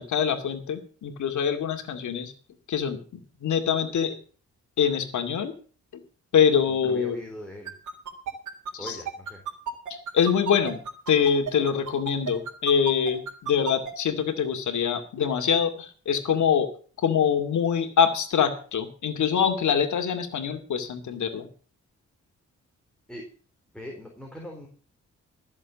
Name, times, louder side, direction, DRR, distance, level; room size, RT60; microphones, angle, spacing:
voice 1, 0.0-2.3 2.7-4.1 4.8-5.5 5.9-6.0 6.3-7.2 8.7-9.0 9.9-16.7 17.0-21.5, left 7 dB, 75° left, 5 dB, 2.4 m, -24 dB
voice 2, 6.6-7.8 8.8-9.4 23.1-23.3 23.7-24.7, left 1 dB, 5° left, 0 dB, 4.2 m, -41 dB
sound 1, 7.6-13.9, right 6 dB, 85° right, 3.6 m, -32 dB
14.5 x 7.3 x 7.3 m, 0.41 s
cardioid pair, 95°, 29 cm